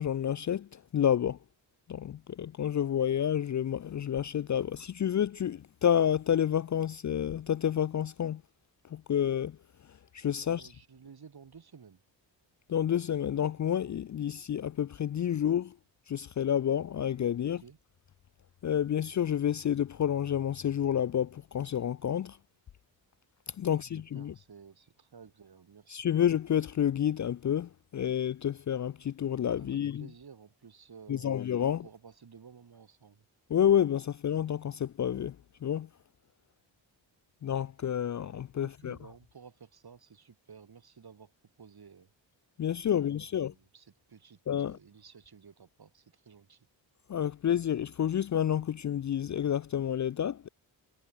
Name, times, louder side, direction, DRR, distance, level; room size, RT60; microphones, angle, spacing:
voice 1, 0.0-1.4 1.9-8.4 8.9-9.6 9.9-10.7 12.7-15.8 16.1-17.6 18.6-22.4 23.5-24.3 25.9-30.1 31.1-31.9 33.5-35.4 35.6-35.9 37.4-39.0 42.6-43.5 44.5-44.8 47.1-50.5, left 9 dB, 40° left, 0.5 m, -29 dB
voice 2, 10.4-12.0 17.6-17.8 23.6-23.8 24.1-26.0 29.6-31.4 31.8-33.2 38.6-41.3 41.6-42.1 42.9-44.4 44.6-46.6, right 6 dB, 55° right, 3.7 m, -54 dB
cardioid pair, 60°, 46 cm